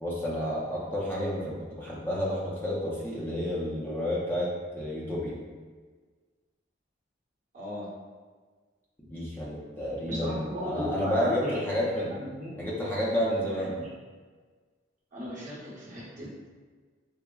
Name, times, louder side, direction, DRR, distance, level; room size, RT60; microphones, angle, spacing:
voice 1, 0.0-4.5 4.8-5.3 9.1-12.1 12.6-13.8, equal, 10° left, -6 dB, 0.5 m, -30 dB
voice 2, 7.5-7.9 10.1-11.5 12.1-12.5 13.7-13.9 15.1-16.5, equal, 40° right, -8 dB, 0.8 m, -36 dB
3.4 x 2.0 x 2.2 m, 1.5 s
head